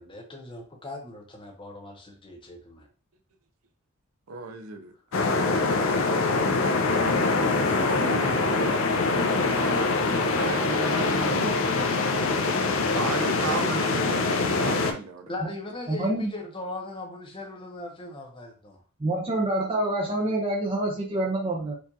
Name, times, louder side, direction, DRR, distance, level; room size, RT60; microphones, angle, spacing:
voice 1, 0.0-2.9 12.9-13.6 15.3-18.8, left 2 dB, 25° left, 0.7 m, -39 dB
voice 2, 4.3-6.7 7.4-9.0 9.6-11.9 12.9-15.3, right 4 dB, 75° right, 0.5 m, -36 dB
sound 1, 5.1-14.9, left 3 dB, 60° left, 0.5 m, -24 dB
voice 3, 15.9-16.3 19.0-21.8, right 1 dB, 25° right, 0.5 m, -27 dB
4.6 x 2.4 x 2.6 m
head